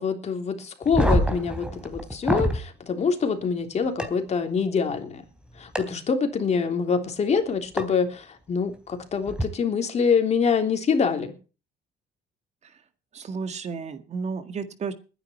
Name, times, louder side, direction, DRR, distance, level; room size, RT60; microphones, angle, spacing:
voice 1, 0.0-5.2 5.6-11.3, left 5 dB, 40° left, 6 dB, 3.4 m, -25 dB
sound 1, 0.8-2.6 4.0-4.1 5.7-5.8 7.8-7.9 9.3-9.4, equal, 5° right, 3.4 m, -24 dB
voice 2, 13.1-14.9, right 5 dB, 40° right, 10 dB, 1.9 m, -33 dB
21.0 x 10.0 x 4.6 m, 0.35 s
cardioid pair, 110°, 17 cm